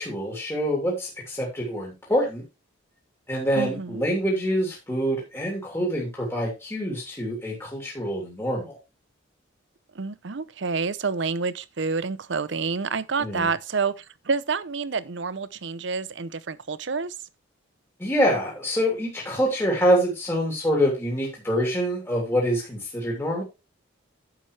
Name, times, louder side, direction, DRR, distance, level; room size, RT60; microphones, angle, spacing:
voice 1, 0.0-2.4 3.3-8.8 13.2-13.5 18.0-23.4, equal, 15° left, 3.0 m, -25 dB
voice 2, 3.6-4.1 9.9-17.1, right 4 dB, 65° right, 0.7 m, -28 dB
10.5 x 7.3 x 3.3 m
head